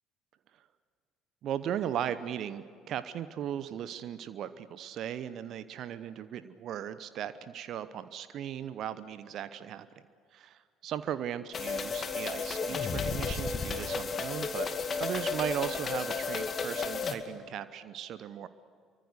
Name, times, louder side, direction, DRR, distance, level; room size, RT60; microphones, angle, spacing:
voice 1, 1.4-9.9 10.3-14.7 15.0-18.5, right 10 dB, 55° right, 14 dB, 0.9 m, -37 dB
sound 1, 11.5-17.2, left 5 dB, 40° left, 2.2 m, -33 dB
27.0 x 24.5 x 6.7 m, 2.2 s
figure-of-eight pair, 50°, 0 cm